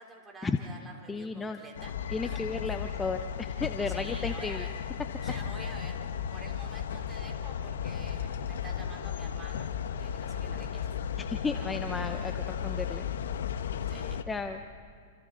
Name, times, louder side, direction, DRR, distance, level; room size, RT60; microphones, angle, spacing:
voice 1, 0.0-1.9 2.2-2.4 3.9-4.7 5.2-6.0 6.3-9.7 10.0-10.9 11.5-11.7 13.9-14.2, right 2 dB, 15° right, 2 dB, 3.6 m, -48 dB
voice 2, 1.1-1.6 2.1-4.7 11.2-13.0 14.3-14.6, left 4 dB, 15° left, 7 dB, 0.8 m, -34 dB
sound 1, 1.7-14.2, left 8 dB, 75° left, 1.3 m, -35 dB
28.5 x 27.5 x 4.0 m, 2.3 s
hypercardioid pair, 125°, 0 cm